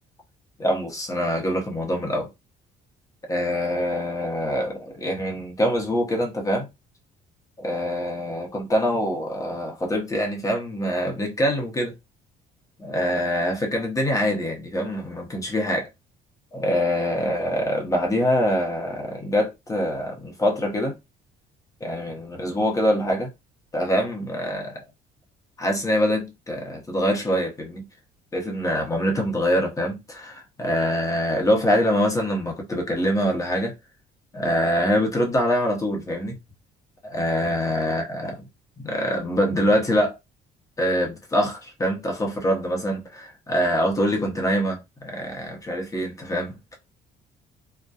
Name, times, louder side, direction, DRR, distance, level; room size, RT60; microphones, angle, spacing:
voice 1, 0.6-2.3 3.3-6.7 7.6-11.9 12.8-15.9 16.5-21.0 21.8-23.3 23.7-24.8 25.6-27.9 28.3-33.7 34.3-36.4 37.0-38.4 38.8-40.2 40.8-46.8, equal, 20° left, 0.8 m, -24 dB
2.6 x 2.2 x 2.2 m
cardioid pair, 110°, 17 cm